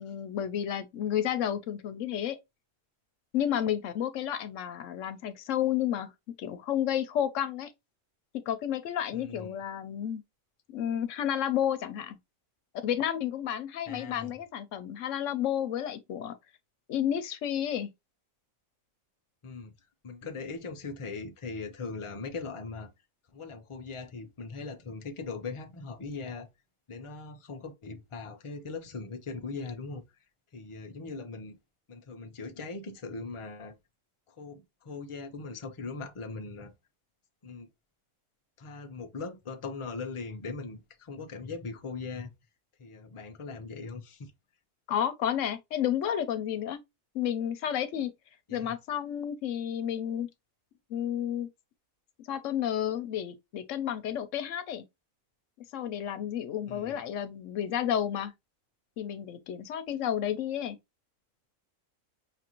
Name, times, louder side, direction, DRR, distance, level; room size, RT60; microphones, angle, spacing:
voice 1, 0.0-2.4 3.3-6.1 6.4-7.7 8.5-10.2 10.7-12.2 12.8-16.4 16.9-17.9 44.9-46.8 47.1-48.1 48.5-50.3 50.9-51.5 52.3-54.8 55.7-58.3 59.0-60.8, left 10 dB, 70° left, 0.9 m, -31 dB
voice 2, 9.1-9.5 13.9-14.3 19.4-19.7 20.0-22.9 23.3-26.5 26.9-30.0 30.5-31.6 31.9-33.7 34.3-36.7 37.4-37.7 38.6-42.3 42.8-44.3 48.5-48.8 56.7-57.0, left 4 dB, 45° left, 0.4 m, -40 dB
5.4 x 2.5 x 2.9 m
omnidirectional pair, 1.4 m